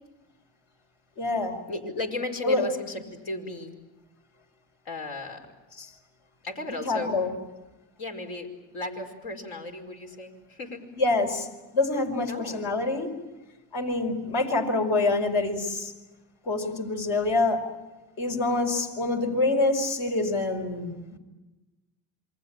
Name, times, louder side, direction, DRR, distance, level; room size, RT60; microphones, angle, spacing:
voice 1, 1.2-1.6 2.4-2.7 5.8-5.9 6.9-7.3 11.0-11.5 11.7-13.1 13.7-15.9 16.4-17.6 18.2-21.2, left 2 dB, 75° left, 3 dB, 5.2 m, -26 dB
voice 2, 1.7-3.7 4.8-5.5 6.4-7.1 8.0-10.9 12.3-12.6, left 2 dB, 90° left, 3 dB, 5.1 m, -35 dB
28.0 x 23.5 x 9.0 m, 1.1 s
supercardioid pair, 75°, 42 cm